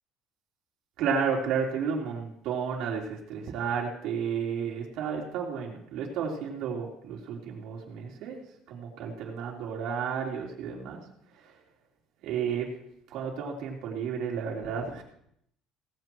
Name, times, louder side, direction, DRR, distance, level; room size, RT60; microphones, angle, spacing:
voice 1, 1.0-8.4 8.7-11.0 12.2-12.7 13.1-15.0, right 6 dB, 60° right, -2 dB, 3.9 m, -32 dB
18.0 x 15.5 x 3.1 m, 0.72 s
cardioid pair, 165°, 0 cm